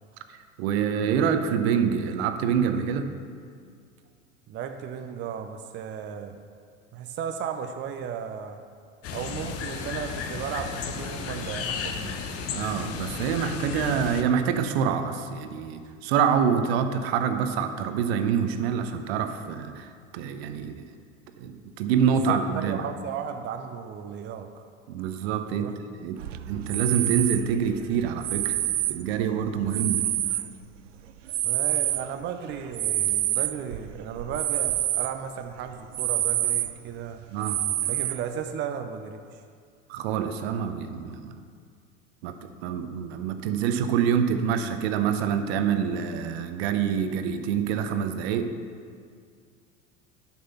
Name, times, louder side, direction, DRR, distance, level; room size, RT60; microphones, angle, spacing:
voice 1, 0.6-3.1 12.5-20.8 21.4-22.9 24.9-25.7 26.0-28.6 28.9-30.1 37.3-37.6 39.9-41.4 42.2-48.6, right 7 dB, 55° right, 8 dB, 0.9 m, -26 dB
voice 2, 4.5-6.4 6.9-8.6 9.1-12.3 22.3-24.5 25.5-25.8 31.4-37.2 37.9-39.4, right 7 dB, 30° right, 6 dB, 0.6 m, -35 dB
sound 1, 9.0-14.2, left 6 dB, 40° left, 1.0 m, -33 dB
sound 2, 26.2-30.9 31.3-35.2 35.5-35.6 35.9-36.9 37.4-38.4, right 13 dB, 75° right, 0.5 m, -27 dB
11.0 x 6.0 x 5.6 m, 2.1 s
figure-of-eight pair, 75°, 37 cm